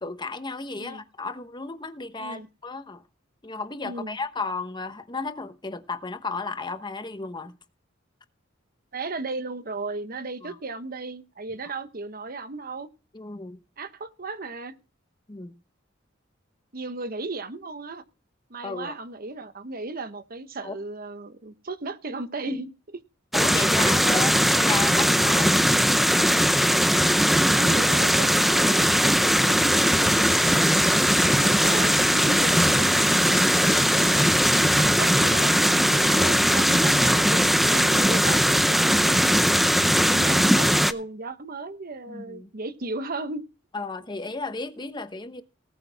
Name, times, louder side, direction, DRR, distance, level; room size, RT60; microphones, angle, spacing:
voice 1, 0.0-3.0 3.4-7.6 10.4-10.6 13.1-13.6 15.3-15.6 18.6-18.9 20.6-20.8 22.5-22.6 23.3-25.6 42.1-42.5 43.7-45.4, left 3 dB, 25° left, 1.0 m, -33 dB
voice 2, 3.8-4.2 8.9-12.9 13.8-14.7 16.7-18.0 18.5-23.0 27.2-31.0 31.3-39.5 40.0-43.4, right 3 dB, 50° right, 1.1 m, -35 dB
sound 1, 23.3-40.9, equal, ahead, 0.5 m, -20 dB
18.5 x 8.2 x 3.5 m
head